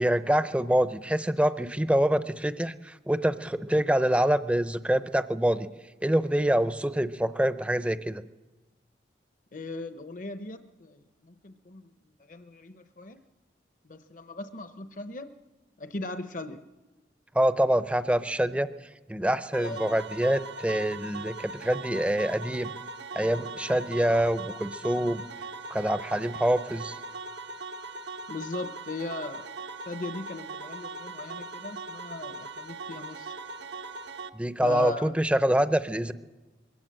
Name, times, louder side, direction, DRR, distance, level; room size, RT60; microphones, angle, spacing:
voice 1, 0.0-5.7 6.0-8.2 17.3-18.7 19.1-22.7 23.1-25.2 25.7-27.0 34.3-36.1, right 1 dB, 5° right, 12 dB, 0.6 m, -25 dB
voice 2, 9.5-11.9 12.2-13.2 13.8-15.3 15.8-16.6 19.6-19.9 28.3-29.5 29.9-33.4 34.6-35.1, left 2 dB, 45° left, 8 dB, 0.8 m, -38 dB
sound 1, 19.5-34.3, right 3 dB, 80° right, 1.2 m, -40 dB
22.0 x 17.0 x 7.6 m, 1.2 s
head